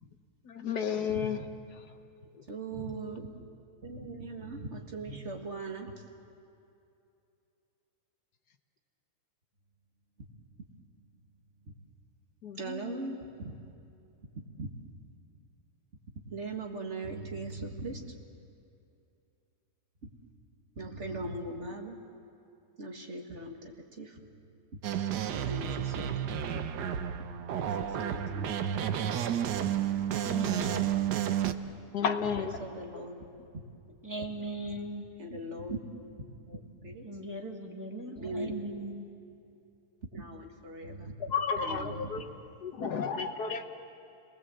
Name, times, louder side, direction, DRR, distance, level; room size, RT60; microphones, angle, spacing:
voice 1, 0.5-1.4 12.4-12.6 31.9-32.5 41.3-42.2 42.6-43.6, left 6 dB, 70° left, 7 dB, 1.6 m, -31 dB
voice 2, 1.1-1.5 2.5-3.5 3.8-5.9 12.6-13.2 13.4-13.6 14.6-14.7 16.3-18.0 20.8-22.0 22.8-24.2 24.7-24.8 25.3-26.4 27.2-27.3 27.8-28.9 29.3-29.6 30.6-30.7 31.7-33.3 35.2-35.8 36.5-37.1 38.2-38.6 40.1-41.1 41.6-42.1, right 2 dB, 45° right, 2 dB, 2.0 m, -40 dB
sound 1, 24.8-31.5, right 9 dB, 80° right, 1.4 m, -31 dB
voice 3, 30.2-30.7 34.0-35.1 37.0-39.1, right 2 dB, 10° right, 1 dB, 2.0 m, -38 dB
29.5 x 20.0 x 7.9 m, 2.6 s
omnidirectional pair, 1.8 m